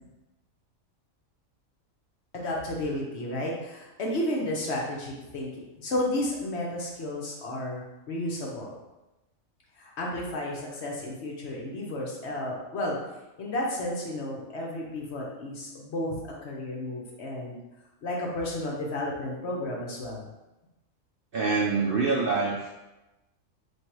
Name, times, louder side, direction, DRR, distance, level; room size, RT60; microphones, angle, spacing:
voice 1, 2.3-8.8 9.8-13.0 13.4-17.6 18.0-20.2, left 1 dB, 60° left, -2 dB, 1.0 m, -32 dB
voice 2, 21.3-22.7, right 4 dB, 60° right, -3 dB, 0.6 m, -25 dB
3.2 x 2.6 x 4.4 m, 1.0 s
omnidirectional pair, 1.4 m